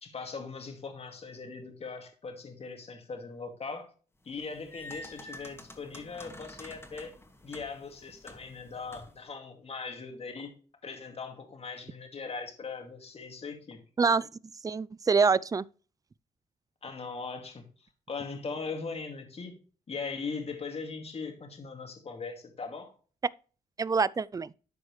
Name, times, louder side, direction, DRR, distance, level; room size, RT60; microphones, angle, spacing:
voice 1, 0.0-3.9 4.2-7.1 7.4-10.5 10.8-13.8 16.8-19.5 19.9-22.9, left 4 dB, 45° left, 2.3 m, -40 dB
sound 1, 4.3-9.3, left 1 dB, 15° left, 2.2 m, -48 dB
voice 2, 14.0-14.3 14.6-15.6 23.8-24.5, right 5 dB, 25° right, 0.4 m, -25 dB
12.0 x 4.8 x 3.2 m
cardioid pair, 70°, 15 cm